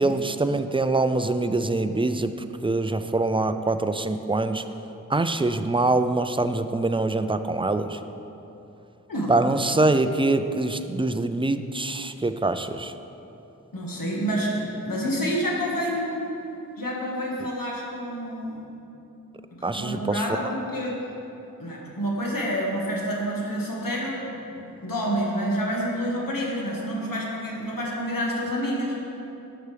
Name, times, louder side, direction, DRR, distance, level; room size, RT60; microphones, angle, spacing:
voice 1, 0.0-2.3 2.6-4.6 5.1-8.0 9.3-12.9 19.6-20.2, right 2 dB, 15° right, 10 dB, 0.3 m, -24 dB
voice 2, 9.1-9.5 13.7-16.3 16.8-18.7 19.5-20.9 21.6-29.0, equal, 80° left, -3 dB, 1.7 m, -28 dB
11.0 x 6.8 x 3.3 m, 3.0 s
wide cardioid pair, 55°, 33 cm